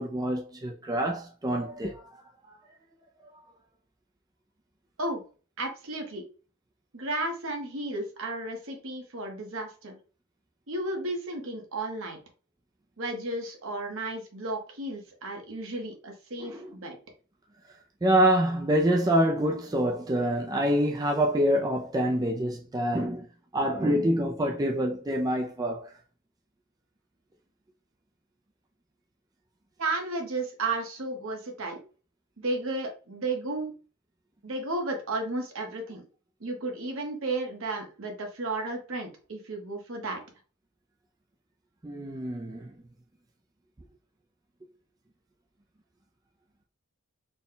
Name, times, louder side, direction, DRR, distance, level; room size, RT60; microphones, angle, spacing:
voice 1, 0.0-2.2 2.5-2.6 16.4-16.7 18.0-23.3 23.5-25.9 41.8-42.8, right 1 dB, 15° right, 0.4 m, -26 dB
voice 2, 5.6-6.2 6.9-10.0 10.7-12.2 13.0-17.0 29.8-31.8 32.4-33.7 34.4-36.1 36.4-40.2, right 2 dB, 65° right, 1.1 m, -33 dB
4.1 x 2.2 x 3.8 m
head